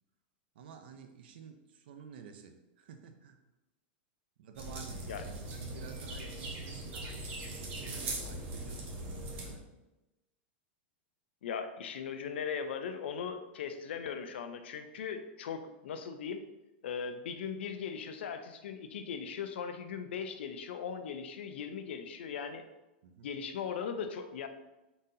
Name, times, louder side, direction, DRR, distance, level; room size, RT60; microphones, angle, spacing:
voice 1, 0.5-3.4 4.4-9.7 23.0-23.3, right 7 dB, 65° right, 6 dB, 0.5 m, -52 dB
sound 1, 4.6-9.5, right 2 dB, 30° right, 0.7 m, -40 dB
voice 2, 11.4-16.4 16.8-22.6 23.2-24.5, left 6 dB, 90° left, 8 dB, 0.5 m, -39 dB
3.9 x 2.7 x 3.8 m, 1.0 s
supercardioid pair, 165°, 6 cm